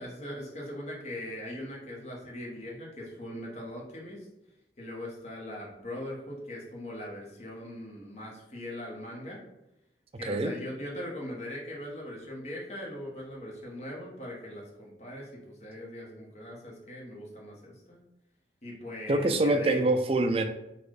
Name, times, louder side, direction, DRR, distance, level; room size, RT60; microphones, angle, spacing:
voice 1, 0.0-4.3 4.8-9.4 10.2-18.0 18.6-19.8, left 1 dB, 40° left, -2 dB, 1.2 m, -40 dB
voice 2, 10.2-10.5 19.1-20.4, right 2 dB, 35° right, 7 dB, 0.4 m, -25 dB
4.2 x 2.6 x 4.8 m, 0.86 s
head